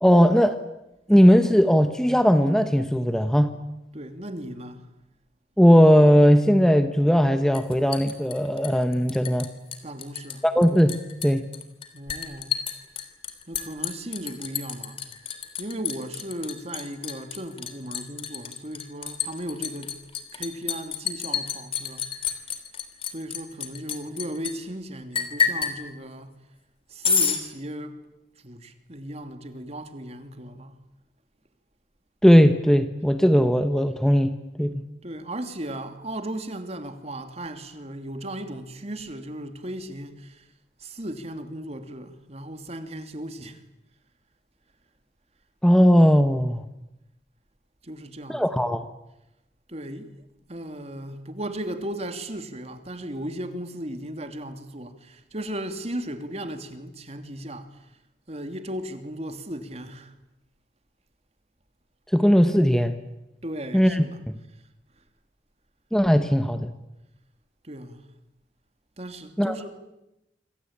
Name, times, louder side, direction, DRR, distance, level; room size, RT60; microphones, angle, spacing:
voice 1, 0.0-0.6 1.1-3.5 5.6-9.5 10.4-10.9 11.2-11.4 32.2-34.3 34.6-34.8 45.6-46.6 48.3-48.8 62.1-62.9 63.7-64.0 65.9-66.7 69.4-69.5, equal, 5° left, 1.1 m, -18 dB
voice 2, 3.9-4.9 9.8-10.4 11.9-12.6 13.5-15.0 15.6-20.0 20.3-22.4 23.0-26.3 26.9-28.0 28.4-30.8 35.0-40.5 40.8-43.6 47.8-48.6 49.7-50.1 50.5-57.9 58.3-60.1 63.4-64.2 65.0-65.1 67.6-68.0 69.0-69.7, right 1 dB, 35° right, 2.7 m, -36 dB
Liquid, 7.5-9.5 9.7-10.4 10.6-24.5 25.1-25.8 27.0-27.4, left 6 dB, 30° left, 3.4 m, -29 dB
27.0 x 25.0 x 8.8 m
head